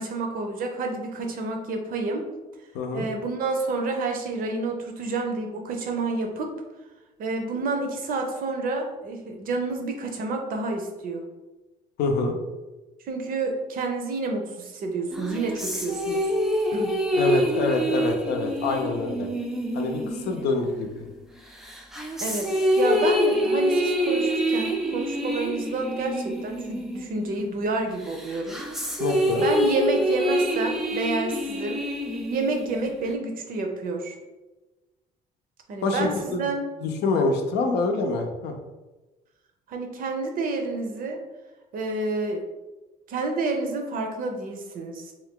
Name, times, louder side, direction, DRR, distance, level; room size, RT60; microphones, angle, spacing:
voice 1, 0.0-2.3 2.9-6.5 7.2-11.3 13.1-16.2 16.7-16.9 22.2-28.6 29.4-31.8 32.3-34.2 35.7-36.7 39.7-41.2 41.7-42.4 43.1-45.1, right 3 dB, 55° right, 3 dB, 0.6 m, -29 dB
voice 2, 2.7-3.1 12.0-12.4 17.1-19.3 19.7-21.0 29.0-29.4 35.8-36.5 36.8-38.5, left 3 dB, 80° left, 4 dB, 0.5 m, -26 dB
sound 1, 15.1-21.1 21.6-27.6 28.0-33.1, equal, ahead, 0.4 m, -26 dB
2.5 x 2.3 x 3.6 m, 1.1 s
cardioid pair, 110°, 17 cm